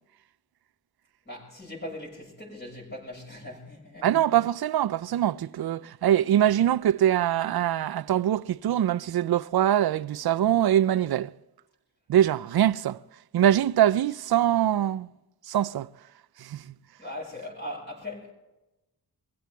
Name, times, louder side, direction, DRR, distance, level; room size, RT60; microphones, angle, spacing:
voice 1, 1.2-4.1 17.0-18.3, left 1 dB, 25° left, 6.8 m, -39 dB
voice 2, 4.0-11.3 12.1-13.0 13.3-15.1 15.5-15.9 16.4-16.7, right 11 dB, 70° right, 0.5 m, -23 dB
24.0 x 16.0 x 3.5 m
wide cardioid pair, 110°, 39 cm